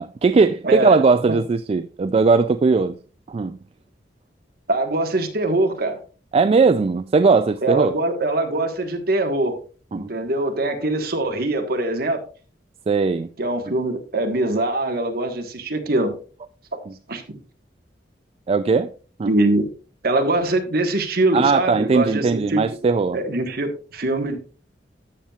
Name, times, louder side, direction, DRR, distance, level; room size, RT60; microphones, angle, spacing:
voice 1, 0.0-2.9 3.3-3.6 6.3-7.9 9.9-10.1 12.9-13.3 16.9-17.0 18.5-18.9 19.2-19.3 21.3-23.2, right 4 dB, 35° right, 0.3 m, -19 dB
voice 2, 0.6-1.4 4.7-6.0 7.6-9.6 9.9-12.2 13.4-16.2 17.1-17.2 19.3-19.7 20.0-22.6 23.1-24.4, right 2 dB, 60° right, 1.4 m, -22 dB
13.5 x 7.2 x 2.4 m
head